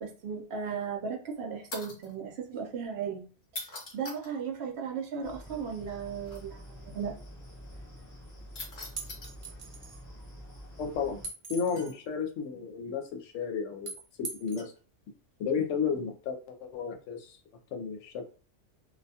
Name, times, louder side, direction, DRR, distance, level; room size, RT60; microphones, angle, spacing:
voice 1, 0.0-3.3 3.9-7.1, right 6 dB, 60° right, 0.8 m, -36 dB
sound 1, 1.7-2.1 3.4-4.3 6.2-6.4 8.6-9.3 11.8-12.2 14.6-14.8 15.7-16.0, left 2 dB, 45° left, 0.8 m, -42 dB
sound 2, 5.2-11.3, equal, 20° left, 0.5 m, -47 dB
sound 3, 9.0-10.0 11.2-12.0 13.9-14.6, right 3 dB, 45° right, 0.4 m, -41 dB
voice 2, 10.8-11.2 11.5-13.9 14.2-14.7 15.4-17.4 17.7-18.2, left 6 dB, 80° left, 0.9 m, -33 dB
2.4 x 2.2 x 2.7 m
omnidirectional pair, 1.3 m